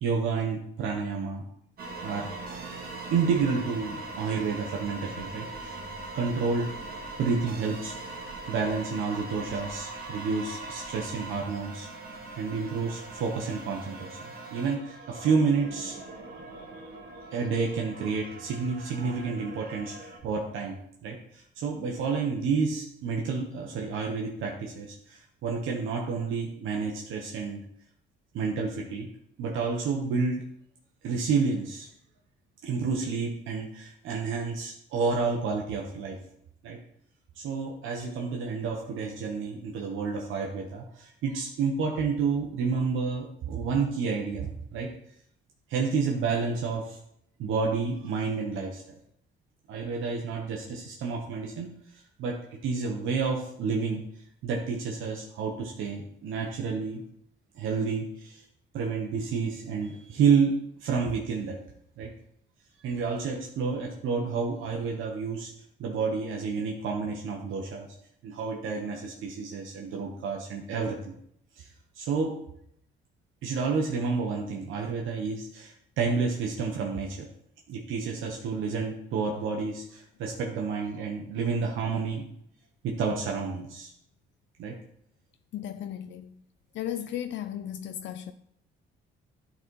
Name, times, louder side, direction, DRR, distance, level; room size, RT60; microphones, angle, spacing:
voice 1, 0.0-1.4 2.0-2.3 3.1-5.8 6.1-6.9 7.2-8.0 8.5-11.9 12.4-14.2 14.5-16.0 17.3-27.6 28.3-29.1 29.4-30.4 31.0-31.9 32.6-36.2 36.6-36.8 37.4-44.9 45.7-47.0 47.4-48.8 49.7-54.0 54.4-57.0 57.5-58.4 58.7-61.6 62.0-62.1 62.8-65.5 65.8-67.9 68.2-71.1 71.6-71.7 71.9-72.4 73.4-77.3 77.7-82.2 82.8-83.9 84.6-84.8, right 5 dB, 85° right, 1.1 m, -30 dB
sound 1, 1.8-20.2, right 2 dB, 50° right, 1.9 m, -41 dB
voice 2, 85.5-86.4 86.7-88.3, left 10 dB, 65° left, 0.4 m, -35 dB
10.5 x 4.2 x 4.6 m
cardioid pair, 90°, 20 cm